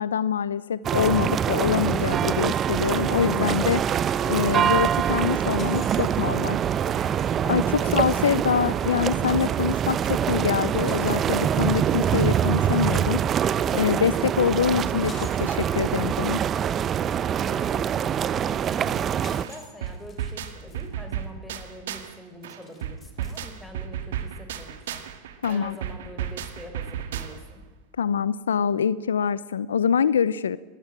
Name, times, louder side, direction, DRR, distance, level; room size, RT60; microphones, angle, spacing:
voice 1, 0.0-3.8 4.3-6.6 6.9-7.1 7.5-13.2 13.7-15.1 15.4-16.4 25.4-25.8 28.0-30.6, left 7 dB, 90° left, 18 dB, 0.7 m, -25 dB
sound 1, 0.8-19.4, right 9 dB, 35° right, 0.8 m, -24 dB
sound 2, 5.6-9.6 10.0-16.5 17.7-17.8 18.2-20.9 21.2-21.3 22.2-23.5, left 5 dB, 30° left, 4.4 m, -52 dB
voice 2, 7.8-8.5 17.2-25.0 25.5-27.6, equal, 5° left, 6 dB, 4.9 m, -44 dB
sound 3, 19.4-22.2 22.4-27.6, right 9 dB, 75° right, 2.1 m, -34 dB
21.5 x 16.0 x 9.0 m, 1.2 s
hypercardioid pair, 95°, 0 cm